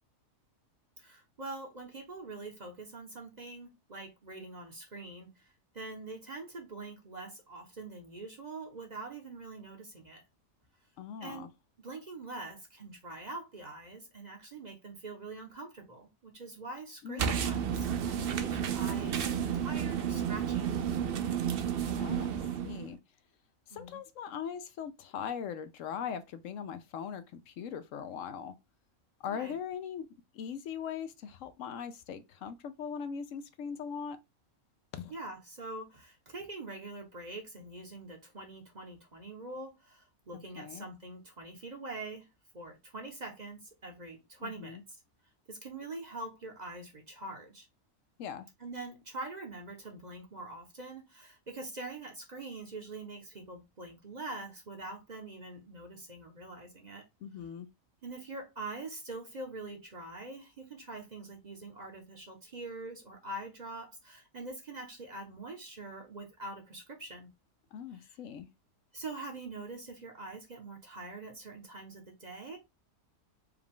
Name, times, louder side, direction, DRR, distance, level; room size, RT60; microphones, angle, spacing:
voice 1, 1.0-10.2 11.2-11.5 11.8-20.7 23.7-24.0 29.3-29.5 35.1-42.3 42.5-44.8 45.5-47.7 48.6-57.0 58.0-67.3 67.9-68.2 68.9-72.6, right 2 dB, 35° right, 0.9 m, -44 dB
voice 2, 11.0-11.5 17.0-17.4 22.0-23.0 23.7-28.5 29.2-30.1 30.3-34.2 34.9-35.1 40.3-40.9 44.4-44.8 48.2-48.5 57.2-57.7 67.7-68.5, left 7 dB, 75° left, 0.9 m, -40 dB
sound 1, 17.2-22.9, right 8 dB, 60° right, 0.6 m, -31 dB
4.8 x 2.3 x 3.5 m
omnidirectional pair, 1.4 m